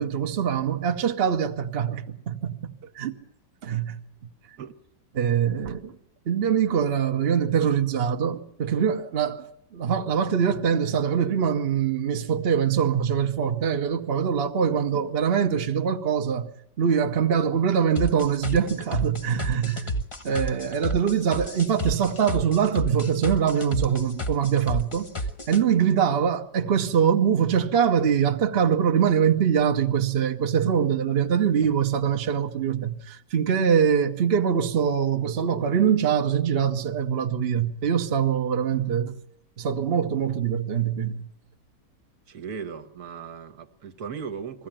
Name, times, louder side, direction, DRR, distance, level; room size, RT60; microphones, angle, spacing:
voice 1, 0.0-3.1 3.6-4.0 5.1-6.0 6.3-16.5 16.8-20.0 20.2-25.1 25.5-39.2 39.6-41.2, right 7 dB, 45° right, 1.0 m, -23 dB
sound 1, 18.0-25.6, right 1 dB, 20° left, 1.0 m, -31 dB
voice 2, 42.3-44.7, right 6 dB, 65° right, 1.6 m, -37 dB
21.5 x 15.5 x 8.8 m
omnidirectional pair, 1.8 m